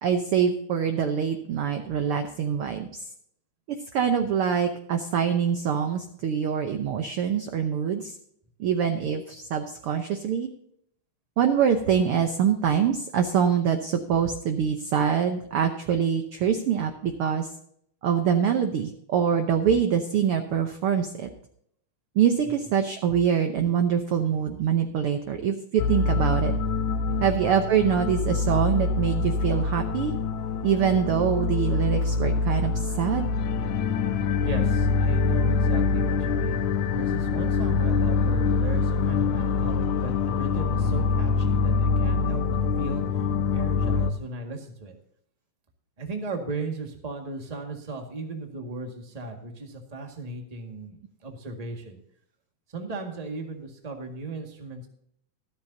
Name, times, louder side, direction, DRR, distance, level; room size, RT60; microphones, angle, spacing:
voice 1, 0.0-3.0 3.7-8.1 8.6-10.5 11.4-17.5 18.0-21.3 22.1-26.5 27.2-30.1 30.6-33.3, right 8 dB, 65° right, 6 dB, 1.4 m, -24 dB
sound 1, 25.8-44.1, left 4 dB, 75° left, 2.1 m, -25 dB
voice 2, 34.4-43.0 43.5-44.9 46.0-52.0 52.7-54.9, right 3 dB, 15° right, 3 dB, 1.3 m, -37 dB
14.0 x 13.5 x 2.8 m, 0.69 s
omnidirectional pair, 3.5 m